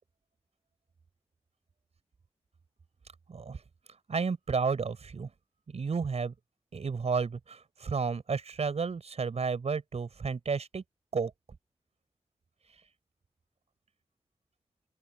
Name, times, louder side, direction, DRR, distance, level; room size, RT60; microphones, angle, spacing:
voice 1, 3.3-3.6 4.1-5.3 5.7-6.3 6.7-10.8 11.1-11.3, right 5 dB, 75° right, 5.0 m, -32 dB
open air
wide cardioid pair, 85°, 11 cm